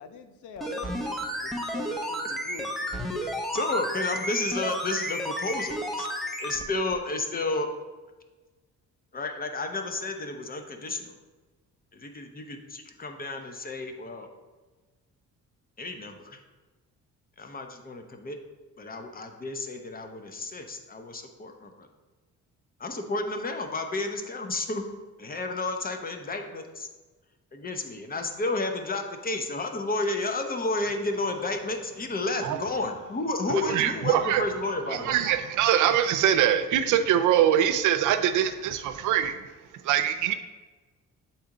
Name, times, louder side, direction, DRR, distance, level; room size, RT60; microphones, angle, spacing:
voice 1, 0.0-3.4, left 6 dB, 80° left, 8 dB, 0.6 m, -44 dB
sound 1, 0.6-6.6 6.9-7.0, equal, ahead, 0.7 m, -32 dB
voice 2, 3.5-6.1 6.4-7.7 9.1-11.1 11.9-14.3 15.8-16.4 17.4-18.4 18.8-21.9 22.8-24.8 25.2-26.9 27.5-35.1, left 2 dB, 30° left, 5 dB, 0.8 m, -31 dB
voice 3, 33.5-34.4 34.9-39.4 39.8-40.3, right 10 dB, 80° right, 9 dB, 0.6 m, -23 dB
7.0 x 4.2 x 3.8 m, 1.3 s
cardioid pair, 90°, 30 cm